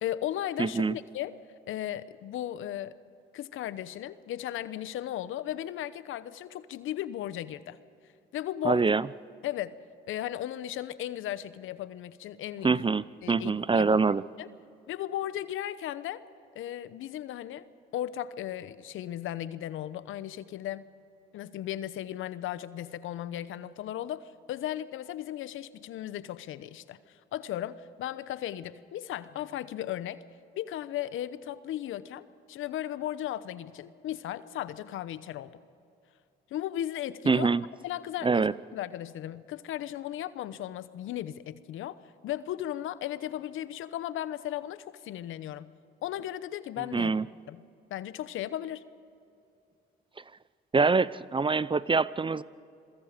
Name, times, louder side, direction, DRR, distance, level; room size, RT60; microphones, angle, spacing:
voice 1, 0.0-1.3 1.7-2.9 3.3-7.8 8.3-8.8 9.4-9.8 10.1-12.9 13.2-14.0 14.4-14.5 14.9-16.2 16.5-17.6 17.9-20.8 21.3-30.2 30.5-35.6 36.5-37.5 37.8-38.5 38.7-42.0 42.2-45.7 46.0-47.1 47.5-47.6 47.9-48.8, left 12 dB, 75° left, 15 dB, 0.9 m, -36 dB
voice 2, 0.6-1.0 8.6-9.1 12.6-14.2 37.3-37.6 38.2-38.5 46.9-47.3 50.7-52.4, right 4 dB, 25° right, 19 dB, 0.6 m, -25 dB
27.5 x 23.0 x 5.2 m, 2.6 s
supercardioid pair, 65°, 21 cm